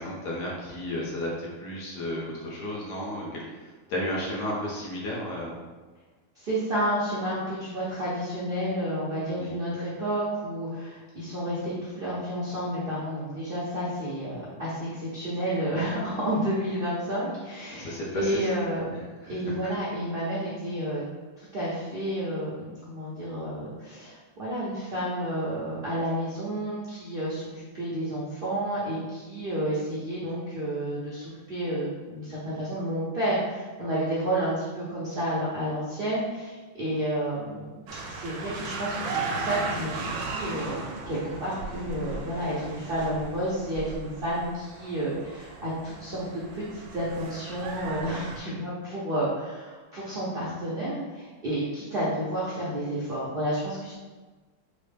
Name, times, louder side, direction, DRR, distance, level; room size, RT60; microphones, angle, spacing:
voice 1, 0.0-3.4 3.9-5.6 9.4-9.5 17.7-18.5 19.2-19.3, left 1 dB, 65° left, -4 dB, 1.4 m, -33 dB
voice 2, 6.4-18.9 19.2-21.0 21.4-40.8 41.1-46.2 46.5-53.9, right 1 dB, 60° right, -8 dB, 0.5 m, -31 dB
sound 1, 37.9-48.4, right 3 dB, 90° right, 1.3 m, -36 dB
4.1 x 2.1 x 3.3 m, 1.3 s
omnidirectional pair, 2.0 m